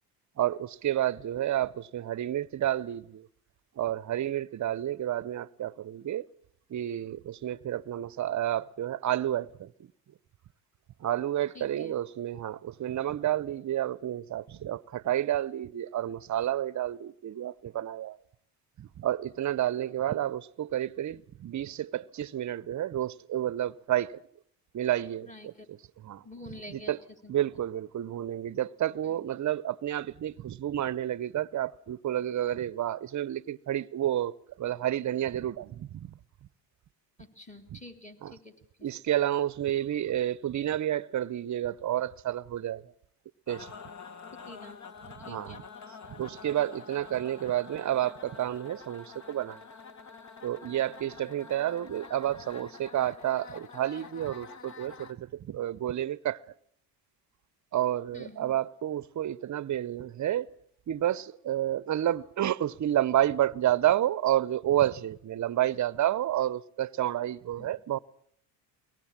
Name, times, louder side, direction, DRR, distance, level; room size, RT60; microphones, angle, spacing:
voice 1, 0.4-3.3 3.8-6.3 6.7-9.7 11.0-18.2 18.8-24.2 24.7-25.5 26.0-26.2 26.9-27.0 27.3-36.1 38.2-38.3 38.8-42.9 43.5-43.7 45.2-45.6 46.1-49.6 50.4-56.4 57.7-60.5 60.9-68.0, right 12 dB, 40° right, 0.8 m, -30 dB
voice 2, 11.5-12.0 20.1-20.2 25.3-25.7 26.2-26.9 27.2-27.4 29.0-29.3 37.2-38.9 44.5-44.8 45.3-45.7 58.1-58.6 67.5-67.7, left 2 dB, 15° left, 3.3 m, -48 dB
sound 1, 43.5-55.1, left 5 dB, 40° left, 1.6 m, -47 dB
22.5 x 19.0 x 7.4 m
supercardioid pair, 90°, 45 cm